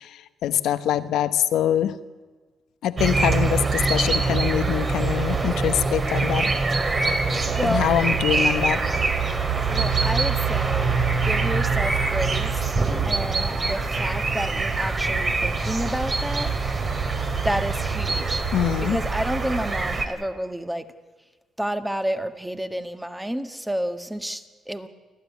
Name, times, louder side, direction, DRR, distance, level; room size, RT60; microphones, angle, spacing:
voice 1, 0.0-2.0 2.8-6.5 7.6-8.8 18.5-19.0, left 10 dB, 80° left, 12 dB, 1.0 m, -24 dB
sound 1, 3.0-20.1, right 4 dB, 35° right, 2.7 m, -24 dB
voice 2, 7.5-7.8 9.7-11.0 11.2-12.7 13.0-16.5 17.4-18.4 18.9-20.9 21.6-24.9, equal, 5° right, 8 dB, 1.6 m, -30 dB
29.0 x 12.0 x 9.5 m, 1.4 s
cardioid pair, 90°, 0 cm